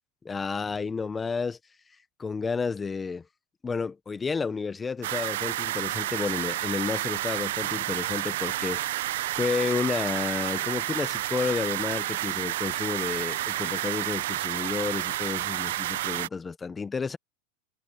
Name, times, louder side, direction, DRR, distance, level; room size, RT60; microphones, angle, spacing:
voice 1, 0.2-1.6 2.2-3.2 3.6-9.1 9.3-17.2, left 5 dB, 15° left, 0.7 m, -31 dB
sound 1, 5.0-16.3, right 15 dB, 80° right, 0.5 m, -30 dB
supercardioid pair, 150°, 0 cm